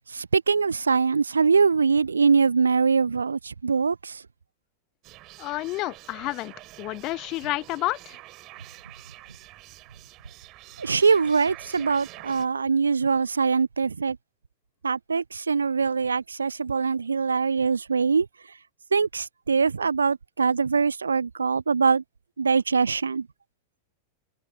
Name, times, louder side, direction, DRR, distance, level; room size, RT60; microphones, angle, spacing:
voice 1, 0.1-4.2 10.8-14.2 14.8-18.3 18.9-22.0 22.4-23.3, right 5 dB, 75° right, 0.5 m, -23 dB
sound 1, 5.0-12.5, right 19 dB, 40° right, 2.9 m, -46 dB
voice 2, 5.4-8.2, left 19 dB, 40° left, 0.8 m, -30 dB
figure-of-eight pair, 90°, 0 cm